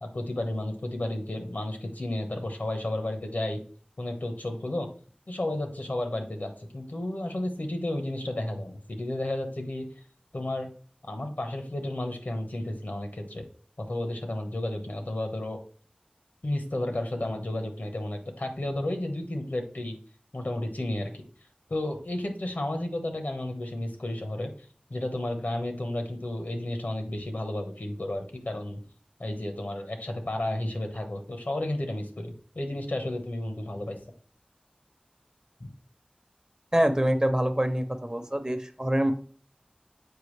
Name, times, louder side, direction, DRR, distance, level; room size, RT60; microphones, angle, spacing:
voice 1, 0.0-3.6 4.0-4.9 5.3-9.9 10.3-10.7 11.0-13.4 13.9-15.6 16.4-20.0 20.3-21.2 21.7-24.5 24.9-28.8 29.2-34.0, left 1 dB, 90° left, 4 dB, 1.1 m, -32 dB
voice 2, 36.7-39.1, right 1 dB, 25° right, 8 dB, 0.7 m, -25 dB
6.9 x 4.7 x 3.3 m, 0.44 s
wide cardioid pair, 40°, 3 cm